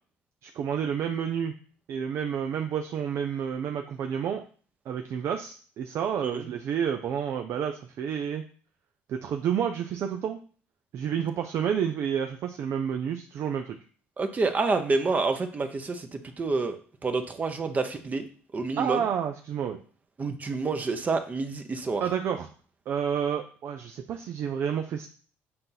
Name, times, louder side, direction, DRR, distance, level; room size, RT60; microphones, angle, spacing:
voice 1, 0.4-1.5 1.9-4.4 4.9-8.4 9.1-10.4 10.9-13.8 18.8-19.8 22.0-22.5 22.9-25.1, right 8 dB, 60° right, 5 dB, 0.6 m, -30 dB
voice 2, 14.2-16.8 17.0-18.2 18.5-19.0 20.2-22.0, right 3 dB, 30° right, 7 dB, 0.9 m, -28 dB
7.6 x 2.7 x 5.8 m, 0.42 s
supercardioid pair, 80°, 5 cm